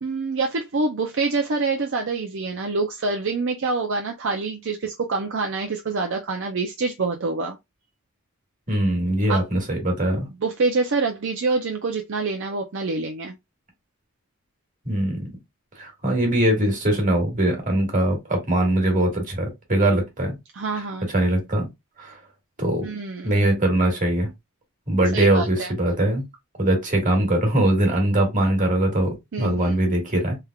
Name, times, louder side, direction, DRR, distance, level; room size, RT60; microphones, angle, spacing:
voice 1, 0.0-7.6 9.3-9.4 10.1-13.4 20.5-21.1 22.8-23.4 25.1-25.7 29.3-29.7, right 3 dB, 60° right, 0.5 m, -26 dB
voice 2, 8.7-10.3 14.9-15.3 15.8-20.4 21.1-21.7 22.0-22.2 22.6-22.9 23.2-24.3 24.9-26.2 26.6-30.4, right 1 dB, 40° right, 1.6 m, -21 dB
3.5 x 3.4 x 2.3 m
head